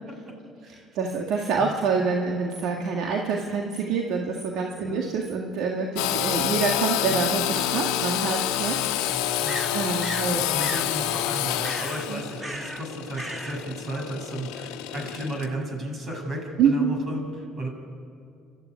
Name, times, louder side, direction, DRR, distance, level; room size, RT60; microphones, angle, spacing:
voice 1, 0.9-9.2 9.7-10.4 12.1-12.2 16.6-17.0, right 5 dB, 70° right, 1 dB, 1.8 m, -26 dB
Engine / Sawing, 6.0-15.5, left 11 dB, 85° left, 1.2 m, -28 dB
sound 1, 9.5-10.3 10.6-10.9 11.6-12.1 12.4-12.9 13.1-13.6, right 2 dB, 25° right, 1.9 m, -35 dB
voice 2, 10.3-17.2 17.6-17.7, equal, 50° right, 2 dB, 6.9 m, -34 dB
29.5 x 12.5 x 9.6 m, 2.4 s
supercardioid pair, 75°, 0 cm